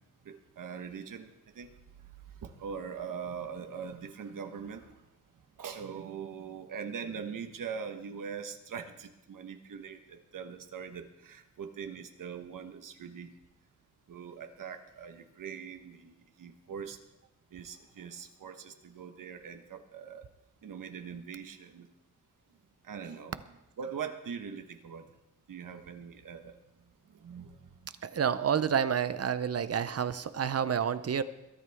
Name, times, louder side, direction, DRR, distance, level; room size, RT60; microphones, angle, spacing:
voice 1, 0.2-1.7 2.4-5.0 5.6-13.3 14.1-17.0 17.5-20.2 20.6-21.9 22.8-23.4 23.8-25.1 25.5-26.6 27.1-27.9, right 6 dB, 90° right, 6 dB, 1.3 m, -42 dB
voice 2, 28.0-31.2, right 8 dB, 50° right, 13 dB, 0.7 m, -29 dB
22.0 x 12.5 x 3.6 m, 0.97 s
wide cardioid pair, 140°, 31 cm